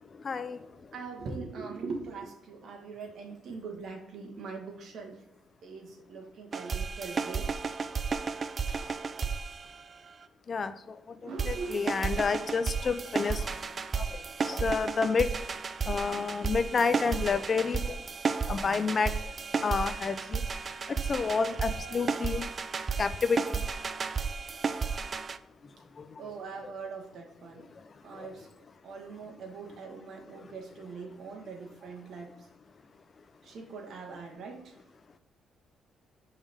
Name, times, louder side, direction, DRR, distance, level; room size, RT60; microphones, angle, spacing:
voice 1, 0.3-0.6 10.5-10.7 11.5-13.4 14.0-14.1 14.5-15.3 15.9-18.0 18.5-19.1 19.6-20.4 21.1-22.4 23.0-23.4, left 5 dB, 40° left, 12 dB, 0.4 m, -29 dB
voice 2, 0.9-5.2 5.6-7.5 8.7-8.9 9.2-9.3 9.6-9.8 11.2-12.3 21.8-22.1 26.2-27.7 28.0-28.5 28.8-32.3 33.4-34.7, right 4 dB, 65° right, 1 dB, 1.3 m, -42 dB
sound 1, 6.5-10.2 11.4-25.4, right 5 dB, 40° right, 0.3 m, -33 dB
5.4 x 3.5 x 5.0 m, 0.88 s
cardioid pair, 90°, 0 cm